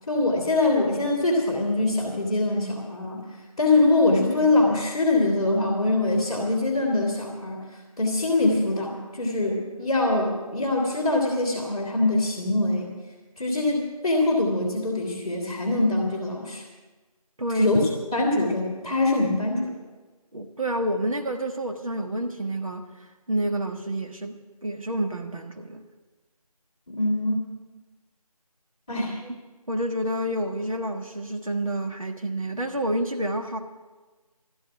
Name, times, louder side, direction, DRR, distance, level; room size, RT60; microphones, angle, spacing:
voice 1, 0.1-3.3 3.6-7.6 8.0-12.9 13.4-16.6 17.5-17.8 18.1-19.7 26.9-27.4 28.9-29.2, left 2 dB, 10° left, 2.0 m, -23 dB
voice 2, 17.4-17.8 20.3-25.8 29.2-29.4 29.7-33.6, right 1 dB, 60° right, 1.4 m, -29 dB
13.5 x 7.7 x 9.9 m
figure-of-eight pair, 170°, 20 cm